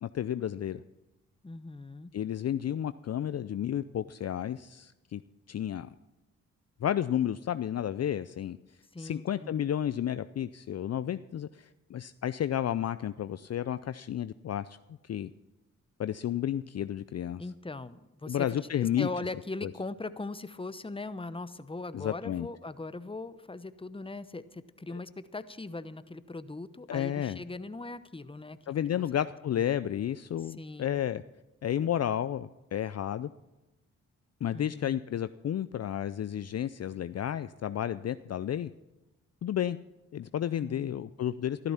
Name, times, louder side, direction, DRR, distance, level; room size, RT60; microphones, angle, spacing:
voice 1, 0.0-0.8 2.1-5.2 5.5-6.0 6.8-8.6 9.0-14.8 15.0-15.3 16.0-17.4 18.3-19.1 19.6-19.7 21.9-22.5 26.9-27.4 28.7-31.2 31.6-33.3 34.4-38.7 39.4-39.8 40.1-41.7, left 10 dB, 50° left, 13 dB, 0.5 m, -32 dB
voice 2, 1.4-2.1 8.9-9.6 17.4-29.0 29.5-29.6 30.4-31.0 34.5-35.0 40.5-40.9, left 3 dB, 15° left, 13 dB, 0.9 m, -40 dB
13.5 x 12.0 x 5.7 m, 1.0 s
supercardioid pair, 45°, 34 cm